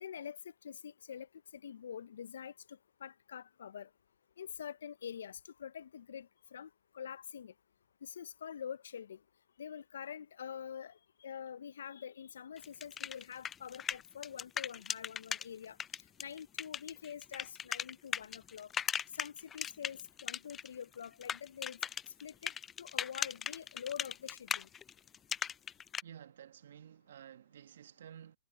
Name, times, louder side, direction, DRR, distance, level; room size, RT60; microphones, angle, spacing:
voice 1, 0.0-3.9 4.4-7.5 8.0-9.2 9.6-15.8 16.2-18.7 19.1-21.8 22.2-22.5 22.8-24.7, left 8 dB, 75° left, 0.7 m, -46 dB
sound 1, 12.6-15.5 15.8-20.7 20.9-26.0, left 8 dB, 20° left, 0.3 m, -38 dB
voice 2, 26.0-28.4, right 9 dB, 70° right, 1.6 m, -53 dB
hypercardioid pair, 115°, 0 cm